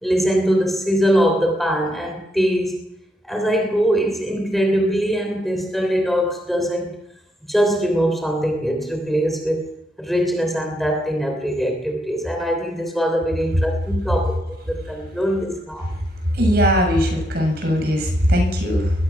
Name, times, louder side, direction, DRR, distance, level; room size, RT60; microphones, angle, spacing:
voice 1, 0.0-2.8 3.2-7.0 7.4-9.7 10.0-14.4 14.7-15.9, equal, ahead, 3 dB, 3.3 m, -22 dB
voice 2, 16.3-18.9, equal, 55° right, 4 dB, 7.5 m, -19 dB
23.0 x 19.0 x 6.0 m, 0.86 s
head